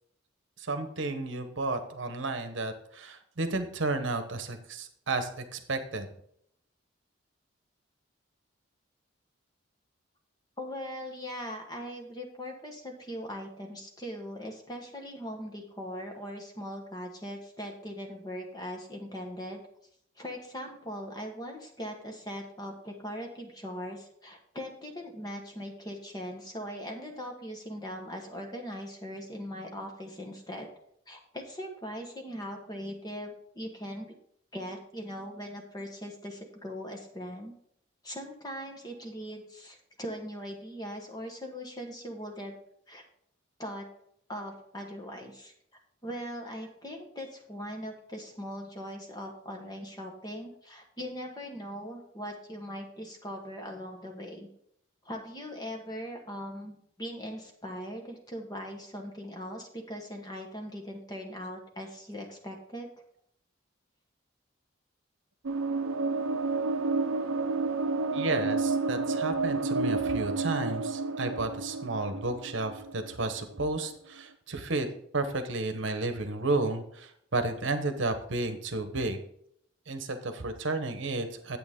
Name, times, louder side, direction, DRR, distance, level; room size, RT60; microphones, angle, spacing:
voice 1, 0.6-6.1 68.1-74.9 75.1-79.2 79.9-81.6, right 2 dB, 65° right, 8 dB, 1.0 m, -32 dB
voice 2, 10.6-19.6 20.2-30.7 31.1-34.1 34.5-37.6 38.0-42.6 42.9-43.0 43.6-43.9 44.3-45.5 46.0-54.5 55.0-62.9, equal, 20° left, 2 dB, 1.3 m, -40 dB
sound 1, 65.4-73.6, right 3 dB, 80° right, 0.5 m, -30 dB
8.9 x 8.2 x 3.6 m, 0.70 s
head